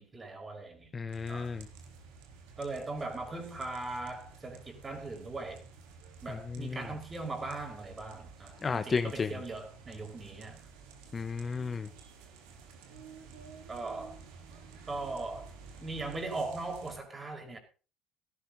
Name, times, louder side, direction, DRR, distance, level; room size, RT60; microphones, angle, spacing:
voice 1, 0.0-0.9 1.3-1.6 2.6-5.6 6.2-10.6 13.7-14.2 14.9-15.5 15.8-17.6, right 3 dB, 25° right, 5.4 m, -39 dB
voice 2, 0.9-1.7 6.3-6.8 8.6-9.3 11.1-11.9, left 5 dB, 30° left, 1.1 m, -33 dB
sound 1, 1.1-17.0, right 5 dB, 90° right, 3.7 m, -52 dB
17.5 x 12.5 x 4.1 m
supercardioid pair, 100°, 0 cm